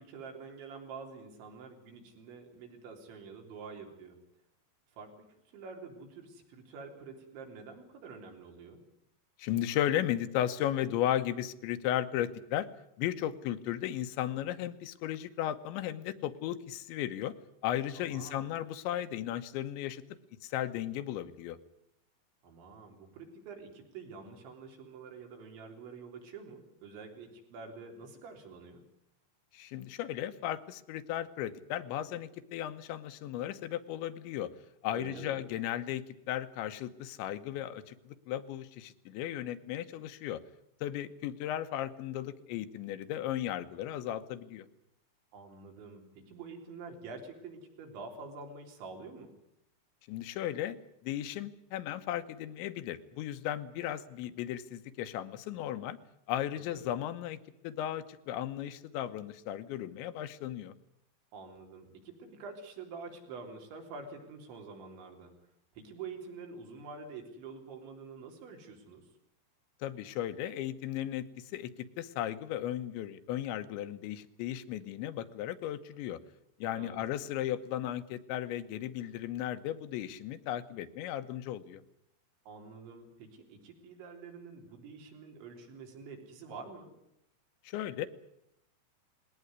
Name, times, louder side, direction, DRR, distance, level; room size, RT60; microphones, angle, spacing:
voice 1, 0.0-4.2 5.0-8.8 18.0-18.5 22.4-28.9 34.9-35.4 45.3-49.4 56.7-56.9 61.3-65.4 65.8-69.1 76.7-77.0 82.5-86.9, right 4 dB, 90° right, 3 dB, 5.8 m, -47 dB
voice 2, 9.4-12.7 13.0-17.3 17.6-20.0 20.4-21.6 29.5-34.5 34.8-40.4 40.8-44.7 50.1-50.8 51.0-56.0 56.3-57.4 57.6-60.7 69.8-71.7 72.0-76.2 76.6-81.8 87.6-88.1, left 12 dB, 85° left, 11 dB, 3.4 m, -35 dB
20.0 x 18.0 x 9.6 m, 0.80 s
omnidirectional pair, 5.1 m